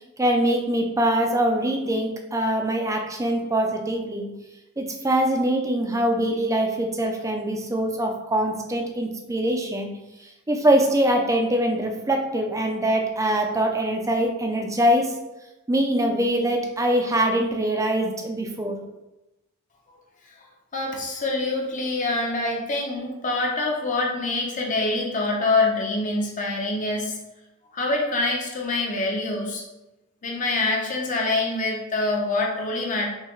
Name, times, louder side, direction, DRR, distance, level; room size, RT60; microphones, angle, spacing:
voice 1, 0.2-4.3 4.8-9.9 10.5-15.1 15.7-18.8, right 1 dB, 15° right, 2 dB, 0.5 m, -23 dB
voice 2, 20.7-27.2 27.7-29.6 30.2-33.1, left 2 dB, 40° left, -1 dB, 0.8 m, -25 dB
5.5 x 2.3 x 3.1 m, 0.97 s
head